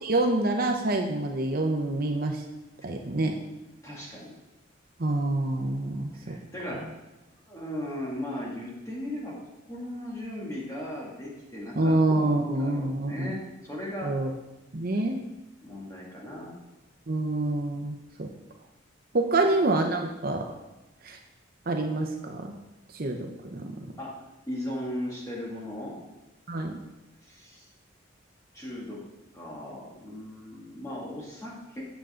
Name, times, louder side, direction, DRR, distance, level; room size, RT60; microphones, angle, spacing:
voice 1, 0.0-2.4 2.8-3.4 5.0-6.4 11.8-13.3 14.0-14.3 14.7-15.2 17.1-18.3 19.1-20.5 21.0-21.2 21.7-22.5 22.9-23.9 26.5-26.8, right 2 dB, 50° right, 3 dB, 0.8 m, -27 dB
voice 2, 3.8-4.3 6.2-6.9 7.5-14.1 15.6-16.5 24.0-24.1 24.5-26.0 27.2-27.7 28.5-29.0 29.3-31.8, left 1 dB, 15° left, -5 dB, 2.4 m, -37 dB
9.0 x 7.1 x 3.8 m, 1.0 s
head